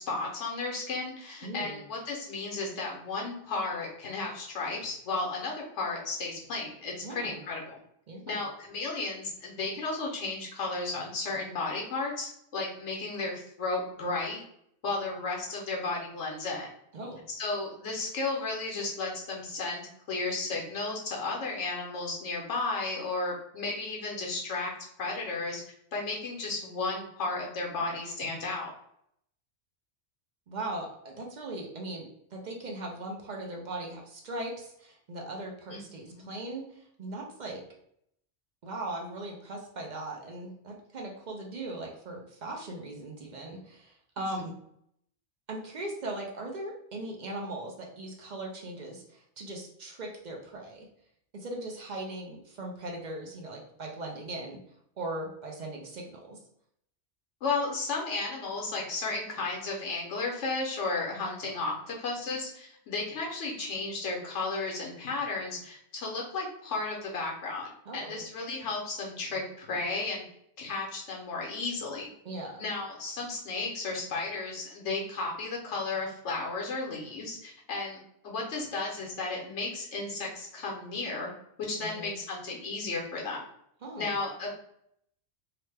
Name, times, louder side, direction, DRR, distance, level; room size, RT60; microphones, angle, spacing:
voice 1, 0.0-7.8 8.3-14.4 14.8-16.7 17.4-24.7 25.0-25.6 25.9-28.7 35.7-36.3 57.4-70.2 70.6-72.1 72.6-81.3 81.6-83.4 84.0-84.5, left 3 dB, 80° left, -1 dB, 1.0 m, -34 dB
voice 2, 1.4-1.8 7.0-7.4 8.1-8.4 16.9-17.3 30.5-37.6 38.6-44.5 45.5-50.9 51.3-54.6 55.0-56.4 67.9-68.2 72.2-72.6 81.8-82.2 83.8-84.1, right 2 dB, 50° right, 0 dB, 0.6 m, -39 dB
2.9 x 2.2 x 3.2 m, 0.72 s
omnidirectional pair, 1.2 m